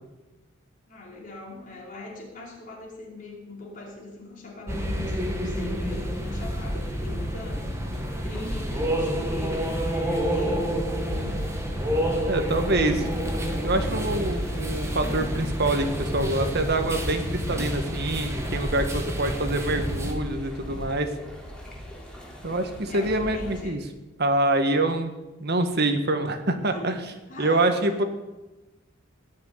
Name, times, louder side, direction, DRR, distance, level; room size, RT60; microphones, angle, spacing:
voice 1, 0.9-11.4 22.8-23.8 26.6-26.9 27.3-28.0, left 1 dB, 40° left, -3 dB, 4.9 m, -41 dB
sound 1, 4.7-20.1, equal, 15° right, 2.1 m, -29 dB
sound 2, 6.4-23.6, equal, 5° left, 3.4 m, -38 dB
voice 2, 12.3-13.1 13.6-21.1 22.4-23.8 24.2-25.1 25.4-27.0 27.4-28.0, right 2 dB, 55° right, 7 dB, 1.8 m, -25 dB
18.5 x 6.8 x 9.8 m, 1.1 s
head